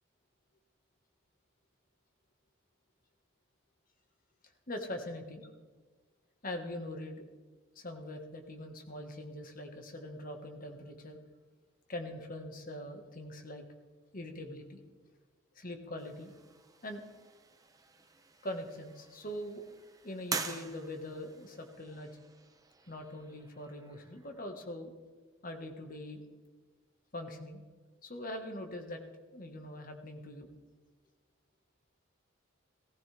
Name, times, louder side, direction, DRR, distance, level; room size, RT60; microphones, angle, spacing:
voice 1, 4.7-5.5 6.4-7.2 7.7-11.2 11.9-13.6 14.1-14.8 15.5-16.3 16.8-17.0 18.4-19.6 20.0-22.1 22.9-24.9 25.4-26.2 27.1-27.6 28.0-29.0 29.3-30.5, left 1 dB, 45° left, 5 dB, 1.5 m, -42 dB
sound 1, 16.0-24.4, right 5 dB, 20° right, 0.7 m, -46 dB
16.0 x 14.5 x 3.4 m, 1.4 s
head